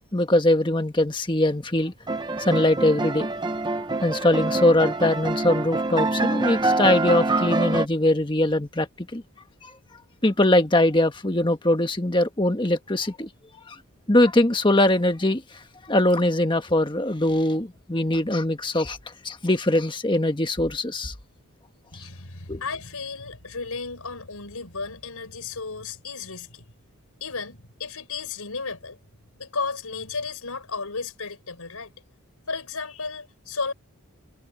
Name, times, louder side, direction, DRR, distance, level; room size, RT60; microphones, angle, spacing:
voice 1, 0.1-1.9 2.4-3.3 4.0-8.9 9.1-9.2 9.6-9.7 10.2-13.3 13.7-13.8 14.1-15.4 15.8-19.0 19.2-21.1 21.9-22.1 22.5-22.6, left 1 dB, 20° left, 1.4 m, -22 dB
sound 1, 2.1-7.9, right 2 dB, 20° right, 1.0 m, -25 dB
voice 2, 21.9-26.6 27.2-29.0 29.4-31.9 32.5-33.7, left 4 dB, 85° left, 4.5 m, -34 dB
head